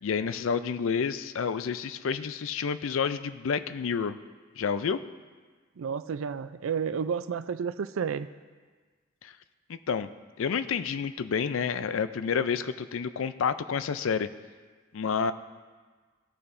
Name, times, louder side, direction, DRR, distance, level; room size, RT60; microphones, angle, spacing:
voice 1, 0.0-4.2 4.6-5.0 9.2-9.3 9.7-10.1 10.4-14.3 14.9-15.3, left 6 dB, 70° left, 13 dB, 0.4 m, -29 dB
voice 2, 5.8-8.3, right 6 dB, 75° right, 12 dB, 0.4 m, -31 dB
17.0 x 6.8 x 2.6 m, 1.5 s
head